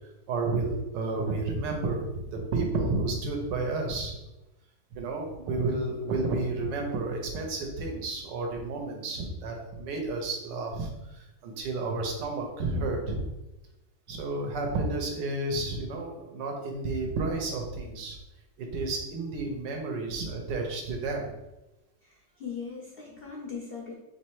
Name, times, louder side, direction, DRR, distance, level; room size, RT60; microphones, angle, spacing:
voice 1, 0.3-4.1 4.9-13.2 14.1-18.2 18.6-21.3, right 3 dB, 75° right, 2 dB, 1.5 m, -31 dB
voice 2, 22.0-23.9, left 6 dB, 60° left, -1 dB, 0.6 m, -39 dB
3.4 x 3.2 x 4.6 m, 0.99 s
omnidirectional pair, 1.9 m